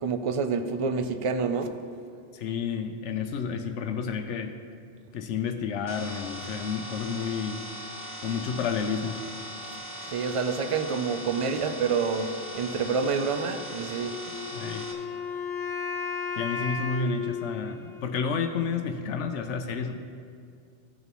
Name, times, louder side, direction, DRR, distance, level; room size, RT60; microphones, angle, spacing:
voice 1, 0.0-1.8 10.1-14.2, right 5 dB, 60° right, 8 dB, 0.3 m, -28 dB
voice 2, 2.3-4.5 5.1-7.6 8.2-9.2 14.2-14.8 16.4-20.0, left 6 dB, 80° left, 6 dB, 0.9 m, -30 dB
sound 1, 5.9-14.9, equal, 50° left, 1.5 m, -40 dB
Wind instrument woodwind instrument, 14.3-18.4, left 6 dB, ahead, 0.9 m, -34 dB
15.5 x 6.6 x 3.0 m, 2.2 s
omnidirectional pair, 1.2 m